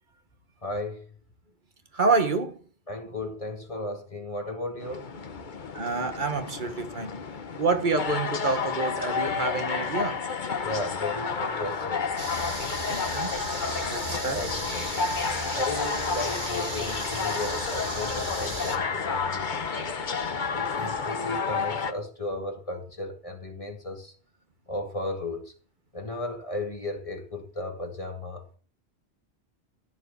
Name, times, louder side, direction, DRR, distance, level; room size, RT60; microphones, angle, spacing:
voice 1, 0.6-1.0 2.9-5.1 10.6-12.2 14.3-15.1 15.5-19.9 20.5-24.1 24.7-25.4 25.9-28.6, left 2 dB, 30° left, 2.4 m, -35 dB
voice 2, 1.9-2.6 5.7-7.2 7.6-10.2 12.9-13.3 13.9-14.4 20.8-20.9, right 3 dB, 50° right, 1.5 m, -27 dB
sound 1, 4.8-21.9, left 5 dB, 50° left, 1.1 m, -31 dB
sound 2, 12.2-18.8, right 3 dB, 90° right, 2.6 m, -36 dB
14.5 x 4.9 x 8.1 m
omnidirectional pair, 1.1 m